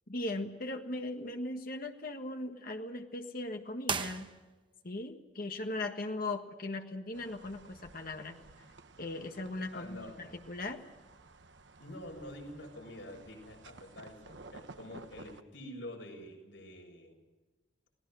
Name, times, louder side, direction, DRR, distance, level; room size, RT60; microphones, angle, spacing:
voice 1, 0.1-4.3 4.8-8.4 9.0-10.8, left 2 dB, 50° left, 4 dB, 1.7 m, -38 dB
sound 1, 3.8-4.9, right 5 dB, 25° right, 1.0 m, -37 dB
sound 2, 7.1-15.4, right 3 dB, 75° right, 1.3 m, -55 dB
voice 2, 9.7-10.2 11.8-17.2, left 1 dB, 80° left, 2 dB, 7.5 m, -47 dB
28.5 x 19.5 x 6.4 m, 1.2 s
head